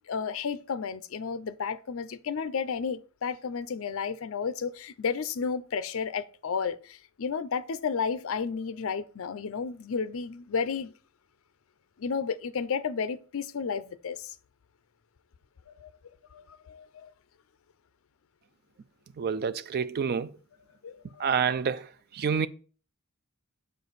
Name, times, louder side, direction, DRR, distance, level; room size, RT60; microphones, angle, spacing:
voice 1, 0.1-10.9 12.0-14.3 15.7-15.9 16.3-17.1 20.8-21.5, left 6 dB, 65° left, 0.5 m, -32 dB
voice 2, 19.2-20.3 21.2-21.9 22.1-22.5, right 6 dB, 45° right, 0.4 m, -28 dB
6.8 x 5.1 x 4.0 m
head